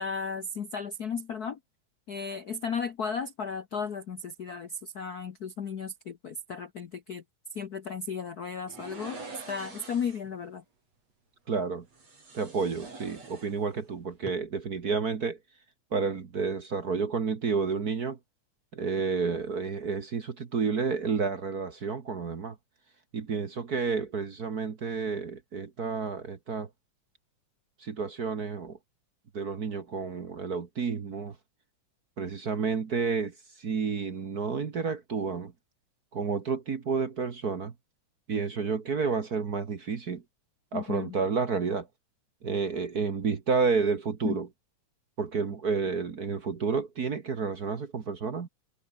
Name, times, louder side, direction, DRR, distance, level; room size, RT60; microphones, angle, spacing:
voice 1, 0.0-1.6 2.1-7.2 7.5-9.2 9.5-10.6 40.7-41.2 44.2-44.4, left 5 dB, 85° left, 0.8 m, -35 dB
sound 1, 8.7-10.3 11.9-13.9 14.1-14.3, right 3 dB, 55° right, 8.2 m, -45 dB
voice 2, 11.5-11.8 12.3-15.4 15.9-18.2 18.7-22.5 23.1-26.7 27.8-28.8 29.3-31.3 32.2-35.5 36.1-37.7 38.3-40.2 40.7-41.9 42.4-44.5 45.2-48.5, right 5 dB, 40° right, 1.5 m, -30 dB
omnidirectional pair, 3.5 m